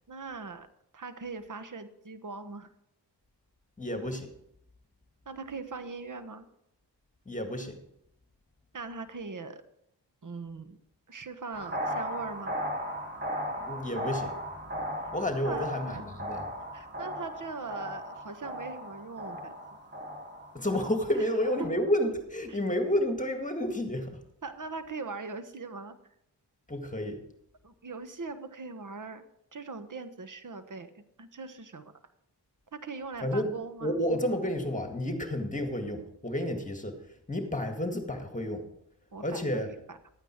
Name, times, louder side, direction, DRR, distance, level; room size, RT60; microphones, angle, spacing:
voice 1, 0.1-0.7 0.9-2.7 5.2-6.5 8.7-9.6 10.2-10.8 11.1-12.6 15.4-16.0 16.7-19.6 21.6-21.7 22.5-22.6 24.4-26.0 27.6-29.2 29.5-31.9 32.7-34.0 39.1-40.0, right 4 dB, 45° right, 10 dB, 1.3 m, -41 dB
voice 2, 3.8-4.3 7.3-7.8 13.6-16.4 20.5-24.2 26.7-27.2 33.2-33.5 33.8-37.0 37.3-38.6 39.2-39.7, left 1 dB, 15° left, 5 dB, 1.9 m, -31 dB
sound 1, 11.5-21.7, equal, 25° right, 3.3 m, -37 dB
12.5 x 9.0 x 4.5 m, 0.77 s
cardioid pair, 55°, 44 cm